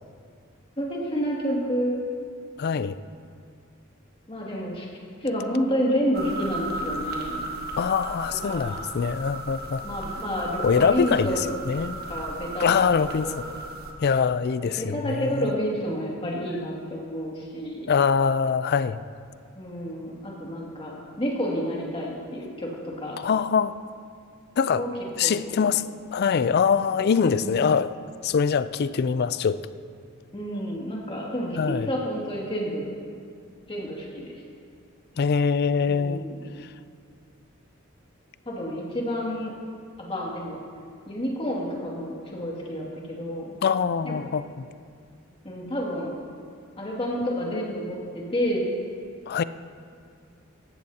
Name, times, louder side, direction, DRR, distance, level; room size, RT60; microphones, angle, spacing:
voice 1, 0.8-2.0 4.3-4.9 5.2-7.6 8.4-8.8 9.8-11.6 12.1-12.8 13.0-13.5 14.6-17.9 19.5-23.2 24.7-24.9 25.2-25.7 27.2-27.7 30.3-32.9 33.7-34.3 35.9-36.4 38.5-39.5 40.0-40.6 41.1-43.5 44.0-44.3 45.4-46.1 46.8-48.7, equal, 25° left, -3 dB, 2.3 m, -30 dB
voice 2, 2.6-3.0 7.8-9.8 10.6-12.0 12.6-13.3 14.0-15.5 17.9-19.0 23.2-23.8 24.6-24.8 25.2-25.8 26.1-27.9 28.2-29.6 31.6-31.9 35.2-36.2 43.6-44.7 49.3-49.4, left 6 dB, 50° left, 14 dB, 0.4 m, -23 dB
sound 1, 6.1-13.9, right 2 dB, 50° right, 1.3 m, -35 dB
18.0 x 14.0 x 2.8 m, 2.2 s
head